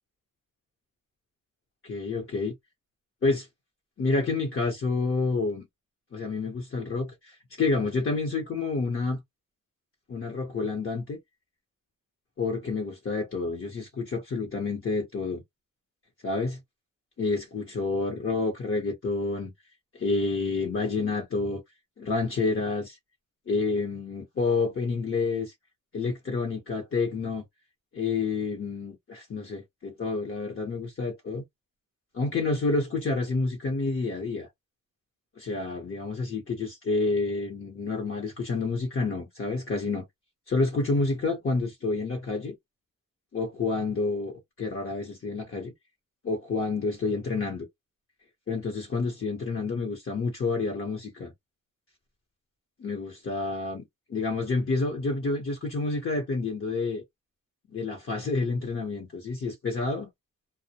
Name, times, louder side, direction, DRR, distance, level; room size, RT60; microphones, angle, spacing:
voice 1, 1.8-2.5 3.2-3.5 4.0-5.7 6.1-9.2 10.1-11.2 12.4-15.4 16.2-16.6 17.2-19.5 19.9-21.6 22.0-23.0 23.5-25.5 25.9-27.4 27.9-31.4 32.1-34.5 35.4-40.0 40.5-42.6 43.3-44.3 44.6-45.7 46.2-47.7 48.5-51.3 52.8-57.0 57.7-60.1, left 3 dB, 40° left, 0.9 m, -29 dB
2.1 x 2.1 x 2.8 m
cardioid pair, 80°, 32 cm